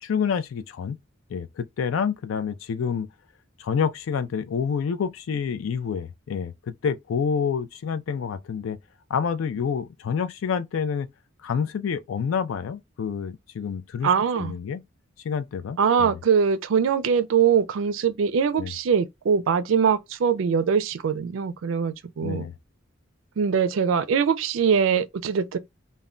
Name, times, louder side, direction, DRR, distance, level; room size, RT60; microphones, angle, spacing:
voice 1, 0.0-1.0 1.3-3.1 3.6-8.8 9.1-11.1 11.4-14.8 15.2-16.2 18.6-18.7 22.2-22.5, left 6 dB, 75° left, 0.4 m, -28 dB
voice 2, 14.0-14.5 15.8-22.5 23.4-25.6, right 6 dB, 70° right, 0.4 m, -22 dB
2.2 x 2.1 x 3.6 m
head